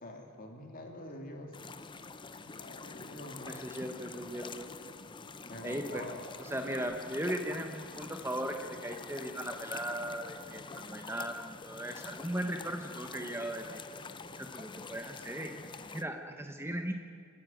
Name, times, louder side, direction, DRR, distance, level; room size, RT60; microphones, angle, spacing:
voice 1, 0.0-1.5 2.4-3.6 5.5-6.4, left 1 dB, 40° left, 2 dB, 2.9 m, -46 dB
sound 1, 1.5-16.0, left 4 dB, 20° left, 0.6 m, -46 dB
voice 2, 3.5-4.7 5.6-6.0 6.4-13.8 14.4-16.9, right 1 dB, 10° right, 4 dB, 1.0 m, -38 dB
28.5 x 10.0 x 9.1 m, 2.5 s
head